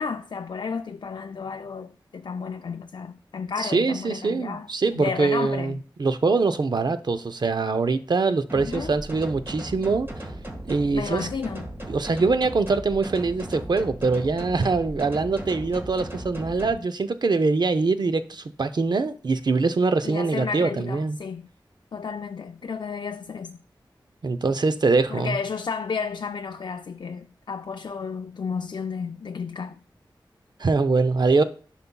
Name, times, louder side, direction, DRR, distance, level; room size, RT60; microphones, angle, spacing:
voice 1, 0.0-4.7 4.9-5.8 8.5-8.9 10.9-11.7 20.0-21.5 21.9-23.6 25.1-29.8, left 5 dB, 65° left, 0.4 m, -32 dB
voice 2, 3.6-10.1 10.7-11.3 11.9-21.2 24.2-25.4 30.6-31.4, right 3 dB, 60° right, 0.6 m, -23 dB
sound 1, 8.5-16.7, right 1 dB, 30° right, 1.6 m, -37 dB
10.5 x 5.5 x 2.3 m
wide cardioid pair, 70°, 8 cm